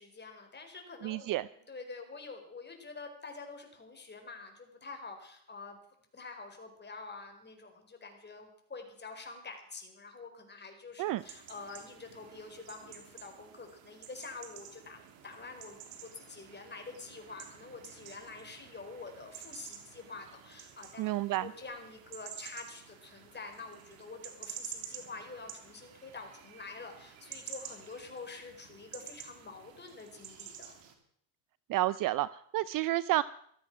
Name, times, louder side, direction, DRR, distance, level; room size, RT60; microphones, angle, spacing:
voice 1, 0.0-5.8 6.1-21.1 21.4-30.7, left 4 dB, 20° left, 5 dB, 4.4 m, -47 dB
voice 2, 1.0-1.5 11.0-11.2 21.0-21.5 31.7-33.2, right 16 dB, 45° right, 18 dB, 0.5 m, -30 dB
sound 1, 11.2-30.9, right 8 dB, 65° right, 3.3 m, -50 dB
15.5 x 13.5 x 6.1 m, 0.65 s
supercardioid pair, 100°, 49 cm